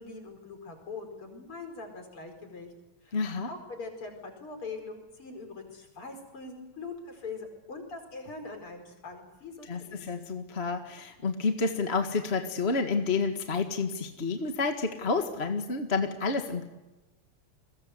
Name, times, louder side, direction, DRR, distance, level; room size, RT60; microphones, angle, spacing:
voice 1, 0.0-2.7 3.0-3.2 3.5-10.1, left 3 dB, 45° left, 5 dB, 5.7 m, -42 dB
voice 2, 3.1-3.5 9.7-16.6, left 4 dB, 25° left, 5 dB, 1.6 m, -29 dB
29.5 x 22.0 x 8.1 m, 1.0 s
omnidirectional pair, 3.3 m